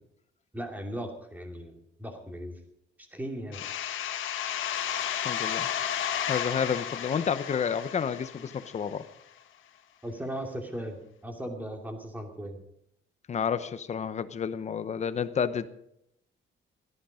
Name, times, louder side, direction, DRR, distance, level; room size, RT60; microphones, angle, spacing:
voice 1, 0.5-1.7 2.0-2.6 3.1-3.6 10.0-11.0 11.2-12.6, equal, 10° right, 3 dB, 2.6 m, -37 dB
sound 1, 3.5-9.0, left 9 dB, 75° left, 1.6 m, -33 dB
voice 2, 5.2-5.7 6.3-9.0 13.3-15.7, left 7 dB, 35° left, 13 dB, 0.9 m, -30 dB
17.0 x 13.5 x 5.1 m, 0.77 s
cardioid pair, 165°, 20 cm